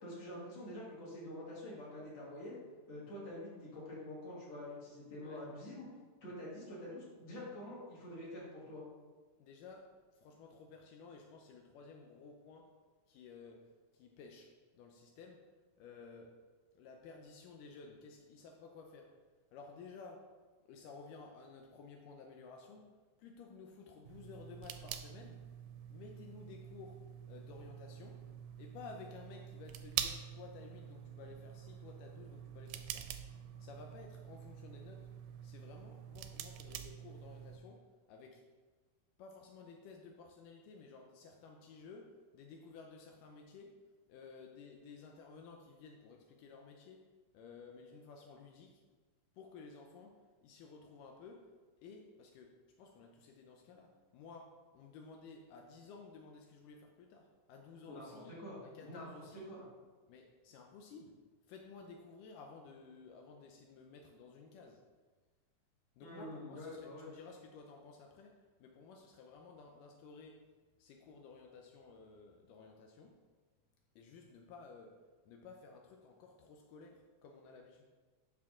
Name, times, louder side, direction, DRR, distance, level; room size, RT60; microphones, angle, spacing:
voice 1, 0.0-2.6 2.9-5.9 6.2-8.8 57.9-59.1 59.3-59.6 66.0-67.1, left 1 dB, 55° left, -6 dB, 3.3 m, -47 dB
voice 2, 9.4-12.8 13.1-15.5 15.8-16.4 16.8-19.2 19.5-20.3 20.7-22.9 23.2-25.5 25.9-28.3 28.6-33.1 33.6-35.1 35.4-38.5 39.2-48.8 49.4-58.3 58.6-59.5 60.1-61.2 61.5-64.8 66.0-70.5 70.8-73.2 74.0-77.8, left 4 dB, 85° left, 2 dB, 2.3 m, -54 dB
sound 1, 24.1-37.6, right 10 dB, 80° right, 1.9 m, -46 dB
9.1 x 6.1 x 3.7 m, 1.4 s
omnidirectional pair, 3.7 m